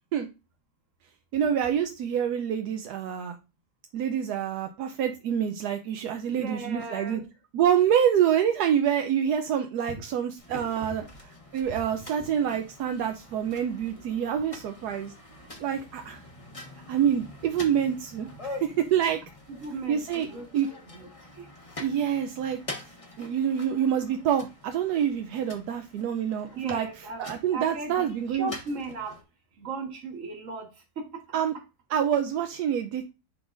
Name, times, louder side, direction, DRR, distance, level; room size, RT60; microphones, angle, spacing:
voice 1, 1.3-3.4 3.9-7.2 7.5-11.0 11.5-15.1 15.6-16.2 16.9-19.2 19.9-20.3 20.5-20.7 21.8-22.9 23.2-26.9 27.2-28.5 31.3-31.5 31.9-33.1, right 9 dB, 80° right, 6 dB, 1.1 m, -26 dB
voice 2, 6.3-7.2 9.9-10.0 10.5-10.9 12.1-12.3 19.5-21.1 21.3-21.5 26.5-27.2 27.5-29.2 29.6-30.7 30.9-31.4, right 3 dB, 50° right, 2 dB, 1.7 m, -37 dB
Labour work in Road Mumbai, 10.4-29.2, left 2 dB, 25° left, 1.1 m, -45 dB
10.0 x 3.9 x 2.4 m, 0.29 s
omnidirectional pair, 1.7 m